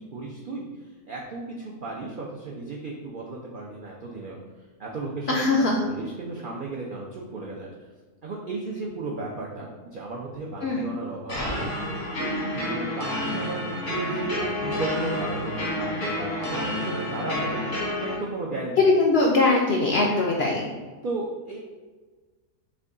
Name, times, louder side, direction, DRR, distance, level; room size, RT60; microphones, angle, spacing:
voice 1, 0.0-4.4 4.8-7.9 8.2-11.6 12.2-18.8 21.0-21.6, right 3 dB, 65° right, -3 dB, 0.5 m, -34 dB
voice 2, 5.3-5.7 10.6-10.8 18.8-20.7, left 2 dB, 65° left, -1 dB, 0.6 m, -21 dB
sound 1, 11.3-18.1, left 1 dB, 85° left, 1.8 m, -29 dB
6.0 x 2.2 x 3.7 m, 1.3 s
omnidirectional pair, 1.6 m